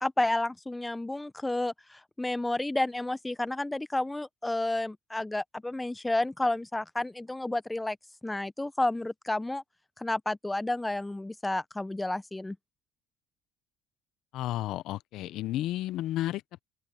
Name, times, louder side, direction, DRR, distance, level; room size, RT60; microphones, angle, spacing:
voice 1, 0.0-8.0 8.2-9.6 10.0-12.6, left 2 dB, 10° left, 0.7 m, -31 dB
voice 2, 14.3-16.6, left 14 dB, 65° left, 0.6 m, -32 dB
open air
cardioid pair, 110°, 0 cm